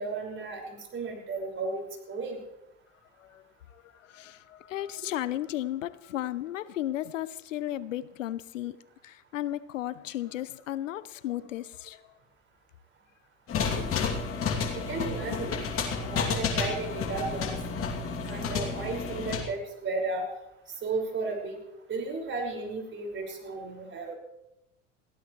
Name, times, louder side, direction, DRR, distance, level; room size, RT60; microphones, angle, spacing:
voice 1, 0.0-1.8 2.1-2.4 14.7-15.5 15.9-17.6 18.3-20.3 20.8-21.6 21.9-24.1, right 3 dB, 30° right, 1 dB, 5.6 m, -34 dB
voice 2, 3.2-12.0 14.4-14.7, left 13 dB, 85° left, 18 dB, 0.7 m, -35 dB
sound 1, 13.5-19.4, left 5 dB, 35° left, 2.7 m, -31 dB
21.0 x 15.5 x 3.2 m, 0.87 s
hypercardioid pair, 85°, 37 cm